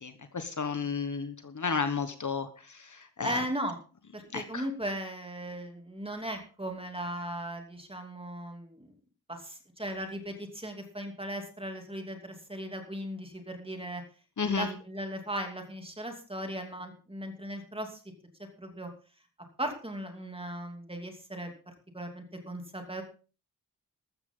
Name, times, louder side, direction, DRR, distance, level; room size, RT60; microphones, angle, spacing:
voice 1, 0.0-3.4 4.3-4.6 14.4-14.7, left 5 dB, 50° left, 9 dB, 1.4 m, -33 dB
voice 2, 3.2-3.8 4.1-8.9 9.3-14.0 14.4-18.0 18.6-18.9 19.6-23.0, right 1 dB, 15° right, 4 dB, 2.8 m, -37 dB
14.5 x 13.0 x 3.8 m, 0.36 s
wide cardioid pair, 140°, 39 cm